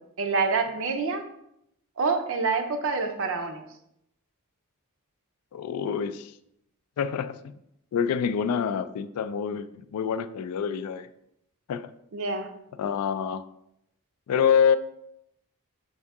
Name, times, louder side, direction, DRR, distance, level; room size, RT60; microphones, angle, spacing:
voice 1, 0.2-1.3 2.0-3.6 12.1-12.5, right 4 dB, 60° right, 7 dB, 0.5 m, -27 dB
voice 2, 5.5-6.3 7.0-7.6 7.9-11.1 11.7-11.9 12.8-13.4 14.3-14.8, left 7 dB, 85° left, 14 dB, 0.3 m, -26 dB
5.5 x 2.7 x 3.5 m, 0.78 s
head